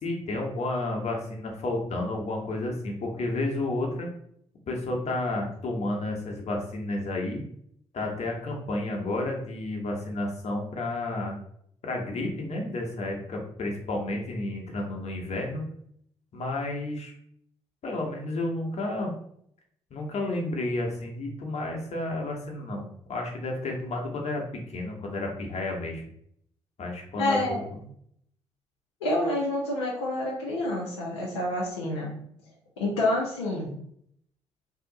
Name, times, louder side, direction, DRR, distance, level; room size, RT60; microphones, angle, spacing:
voice 1, 0.0-4.1 4.7-7.4 7.9-11.4 11.8-15.6 16.3-17.1 17.8-19.1 19.9-24.4 24.7-26.0 26.8-27.8, left 2 dB, 55° left, 0 dB, 1.0 m, -31 dB
voice 2, 27.2-27.6 29.0-32.1 32.8-33.7, left 1 dB, 90° left, -5 dB, 0.6 m, -28 dB
2.8 x 2.5 x 3.8 m, 0.68 s
hypercardioid pair, 40°, 14 cm